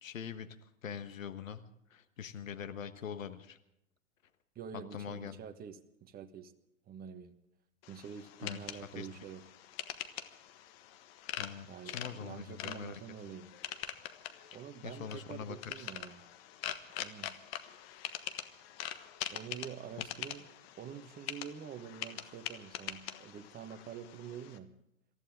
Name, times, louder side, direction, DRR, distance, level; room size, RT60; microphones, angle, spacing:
voice 1, 0.0-1.6 1.9-3.6 4.7-5.4 8.4-9.1 11.4-13.0 14.8-15.9, left 7 dB, 70° left, 10 dB, 1.4 m, -43 dB
voice 2, 4.5-6.5 6.9-7.3 7.9-9.4 11.7-13.5 14.5-16.2 17.0-17.4 19.3-20.5 20.8-24.7, right 8 dB, 20° right, 8 dB, 1.3 m, -47 dB
sound 1, 7.8-24.6, left 11 dB, 45° left, 1.4 m, -44 dB
27.0 x 14.5 x 3.7 m, 0.80 s
figure-of-eight pair, 100°, 41 cm